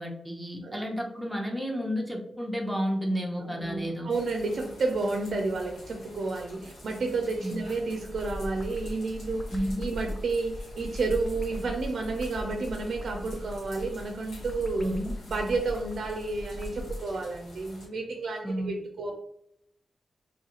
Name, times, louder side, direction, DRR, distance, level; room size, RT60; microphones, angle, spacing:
voice 1, 0.0-4.1 7.4-7.6 9.5-9.9 14.8-15.1 18.4-18.7, equal, 5° right, 0 dB, 0.7 m, -31 dB
voice 2, 3.4-14.9 15.3-19.1, right 3 dB, 65° right, 1 dB, 0.4 m, -31 dB
sound 1, 4.1-17.9, left 1 dB, 80° left, 1.1 m, -49 dB
sound 2, 8.0-17.0, left 1 dB, 35° left, 0.4 m, -39 dB
3.0 x 2.3 x 2.9 m, 0.74 s
cardioid pair, 75°, 0 cm